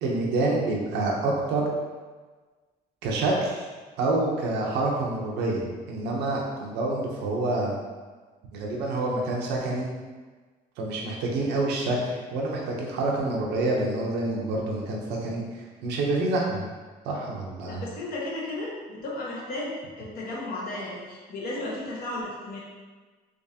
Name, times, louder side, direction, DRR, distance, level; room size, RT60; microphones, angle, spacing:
voice 1, 0.0-1.6 3.0-3.7 4.0-7.8 8.5-9.9 10.8-16.6 17.0-17.8, right 2 dB, 85° right, -2 dB, 0.7 m, -27 dB
voice 2, 17.6-22.6, left 2 dB, 60° left, -4 dB, 1.1 m, -34 dB
3.5 x 3.1 x 2.7 m, 1.4 s
cardioid pair, 110°, 17 cm